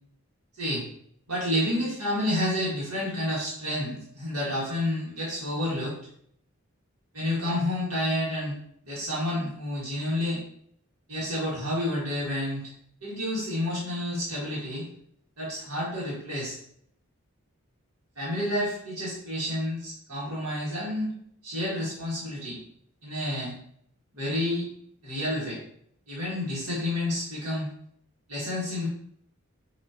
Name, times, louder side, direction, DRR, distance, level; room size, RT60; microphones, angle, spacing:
voice 1, 1.3-5.9 7.1-8.6 8.9-10.4 11.1-12.6 13.0-14.8 15.4-16.6 18.2-21.1 21.4-22.6 23.0-23.5 24.1-24.6 25.0-25.6 26.1-27.7 28.3-28.9, left 1 dB, 85° right, -7 dB, 1.8 m, -29 dB
6.2 x 3.0 x 2.8 m, 0.68 s
head